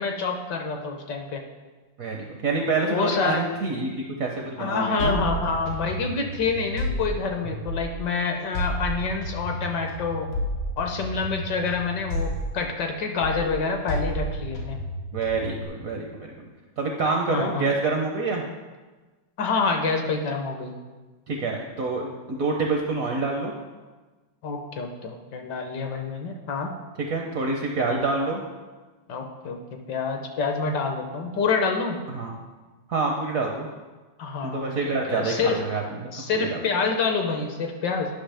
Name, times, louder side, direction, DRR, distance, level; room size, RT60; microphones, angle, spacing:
voice 1, 0.0-1.4 2.9-3.4 4.6-10.3 10.8-14.8 17.3-17.7 19.4-20.7 24.4-26.7 29.1-29.6 29.9-32.0 34.2-34.7 35.1-35.6 36.1-38.1, left 4 dB, 65° left, 4 dB, 1.3 m, -27 dB
voice 2, 2.0-3.9 4.2-5.2 15.1-16.3 16.8-18.4 21.3-23.5 27.1-28.4 32.1-32.3 32.9-33.7 34.4-36.5, right 3 dB, 65° right, 1 dB, 0.9 m, -27 dB
sound 1, 5.0-8.1 8.5-13.0 13.2-15.7, equal, 90° left, 2.0 m, -31 dB
10.0 x 5.8 x 3.4 m, 1.3 s
omnidirectional pair, 2.2 m